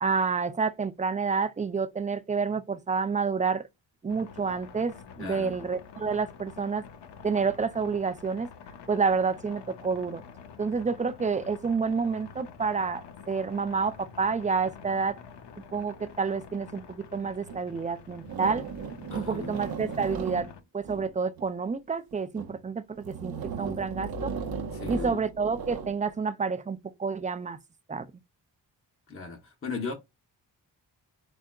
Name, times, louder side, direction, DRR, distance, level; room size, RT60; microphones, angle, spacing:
voice 1, 0.0-3.7 4.0-6.8 7.2-8.5 8.9-10.2 10.6-15.2 15.7-18.7 19.2-24.3 24.9-27.6 27.9-28.0, right 5 dB, 20° right, 0.3 m, -29 dB
sound 1, 4.1-20.6, left 6 dB, 65° left, 0.6 m, -48 dB
voice 2, 5.2-5.6 19.1-19.6 24.7-25.2 29.1-29.9, left 4 dB, 30° left, 0.7 m, -37 dB
sound 2, 17.5-17.6 18.2-21.5 22.1-22.6 23.0-26.0, right 5 dB, 55° right, 0.7 m, -36 dB
3.4 x 2.4 x 2.2 m
supercardioid pair, 40°, 45 cm